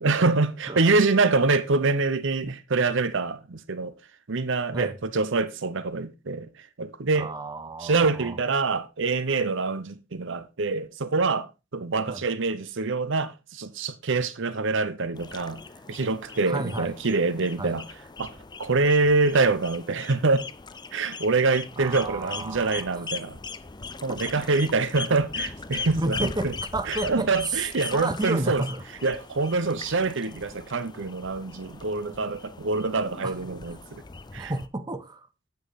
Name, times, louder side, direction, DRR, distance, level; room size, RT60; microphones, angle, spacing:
voice 1, 0.0-3.9 4.3-6.5 6.8-7.3 7.8-15.6 15.9-17.9 18.2-18.3 18.6-20.4 20.9-23.4 24.0-26.5 26.9-28.6 29.0-34.0 34.3-34.5, right 3 dB, 65° right, 0.8 m, -25 dB
voice 2, 7.1-8.4 12.1-12.2 16.5-16.9 17.6-17.8 21.8-23.0 24.1-24.2 26.0-28.8 33.2-33.4 34.4-35.3, right 2 dB, 20° right, 0.7 m, -32 dB
sound 1, 15.2-34.7, left 4 dB, 20° left, 0.6 m, -40 dB
9.1 x 7.3 x 4.0 m
head